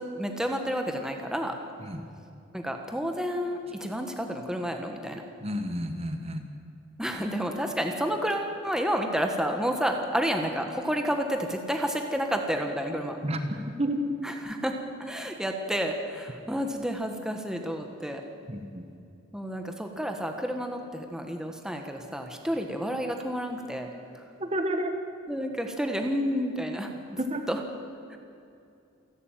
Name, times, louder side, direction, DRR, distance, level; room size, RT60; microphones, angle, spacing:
voice 1, 0.0-1.5 2.5-5.2 7.0-13.2 14.2-14.7 15.0-18.2 19.3-23.9 25.3-26.9 27.5-27.6, equal, 5° right, 4 dB, 1.5 m, -30 dB
voice 2, 5.4-6.4 13.2-14.1 18.5-18.8 24.4-24.9 27.2-27.5, equal, 30° right, 6 dB, 1.4 m, -30 dB
27.5 x 12.5 x 9.1 m, 2.6 s
head